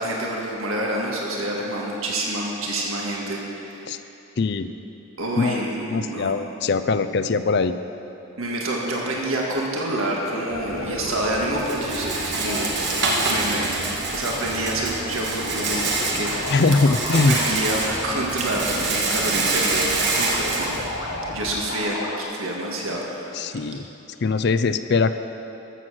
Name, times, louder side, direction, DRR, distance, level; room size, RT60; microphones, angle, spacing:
voice 1, 0.0-4.0 5.2-6.3 8.4-12.7 13.0-13.7 14.1-16.6 17.3-23.7, right 1 dB, 80° right, -2 dB, 1.8 m, -28 dB
voice 2, 4.4-4.7 5.4-7.7 16.5-17.4 23.3-23.9 24.2-25.1, left 4 dB, 50° left, 11 dB, 0.4 m, -21 dB
sound 1, 10.2-22.2, left 2 dB, 90° left, 1.3 m, -34 dB
Rattle, 10.5-21.6, right 3 dB, 55° right, 1.4 m, -27 dB
13.5 x 7.8 x 6.3 m, 3.0 s
head